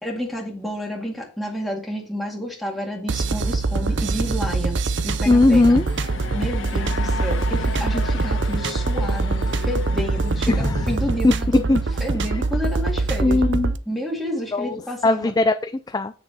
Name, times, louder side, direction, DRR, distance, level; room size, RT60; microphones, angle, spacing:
voice 1, 0.0-5.8 6.3-13.4 13.9-15.3, equal, ahead, -2 dB, 2.1 m, -30 dB
sound 1, 3.1-13.8, right 3 dB, 65° right, 0.6 m, -24 dB
sound 2, 4.9-13.6, left 3 dB, 80° left, 1.2 m, -36 dB
voice 2, 5.3-5.8 10.5-10.8 11.2-11.3 11.7-11.8 13.2-13.7 14.5-14.7 15.0-16.2, left 2 dB, 20° left, 9 dB, 0.3 m, -18 dB
8.0 x 6.8 x 4.0 m, 0.37 s
head